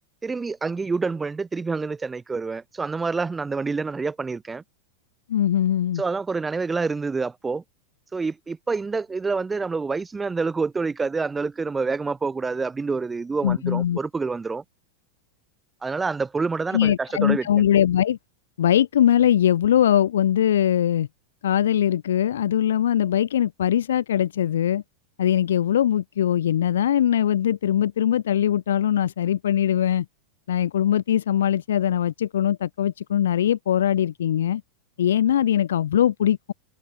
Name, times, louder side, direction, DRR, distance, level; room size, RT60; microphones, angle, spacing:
voice 1, 0.2-4.6 6.0-7.6 8.1-14.6 15.8-17.5, right 4 dB, 15° right, 0.7 m, -27 dB
voice 2, 5.3-6.0 13.4-14.0 16.7-18.2 18.6-21.1 21.4-24.8 25.2-30.1 30.5-34.6 35.0-36.5, left 10 dB, 60° left, 0.4 m, -21 dB
figure-of-eight pair, 90°, 0 cm